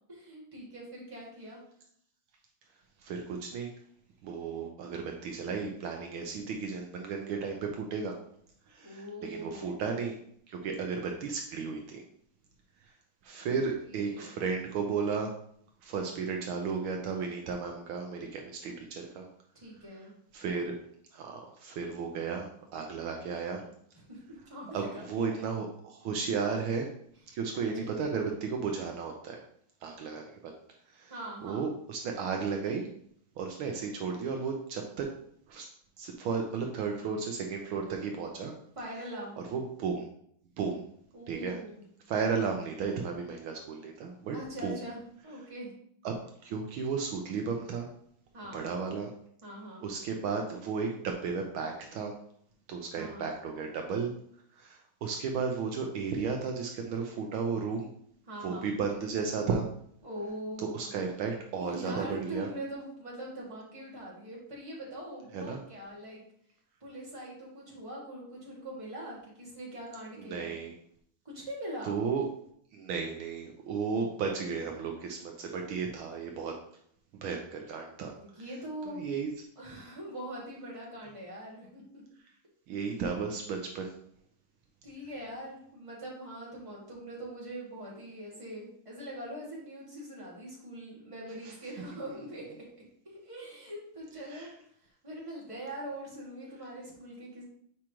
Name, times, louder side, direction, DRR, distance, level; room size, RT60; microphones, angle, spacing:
voice 1, 0.1-1.6 8.8-9.9 13.3-13.6 13.9-14.4 19.5-20.2 23.9-25.5 27.3-28.0 31.1-31.7 38.8-39.4 41.1-41.8 44.3-45.7 48.3-48.7 49.4-49.9 52.9-53.3 58.3-58.7 60.0-60.9 61.5-66.2 66.8-70.6 71.2-72.0 78.1-79.1 79.6-82.0 82.8-82.9 84.8-92.4 93.0-94.5 94.8-97.4, right 1 dB, 15° right, -6 dB, 2.1 m, -43 dB
voice 2, 3.0-3.7 4.2-8.1 8.7-10.1 10.5-12.0 13.2-15.3 15.8-19.3 20.3-20.7 21.1-23.6 24.7-25.7 25.9-26.9 27.3-29.4 29.8-30.5 30.9-31.1 31.4-32.9 33.4-35.1 35.5-35.7 36.0-38.5 39.5-40.1 40.6-40.8 41.3-41.6 42.1-44.4 44.6-44.7 46.0-46.1 46.4-47.9 48.5-49.1 49.8-52.1 52.7-54.1 54.6-57.9 58.4-59.6 60.7-62.5 65.3-65.6 70.2-70.7 71.9-72.2 72.7-76.5 77.2-78.1 78.9-79.3 82.7-83.9 94.3-94.5, right 5 dB, 75° right, 2 dB, 1.5 m, -34 dB
7.4 x 4.9 x 3.0 m, 0.65 s
omnidirectional pair, 2.4 m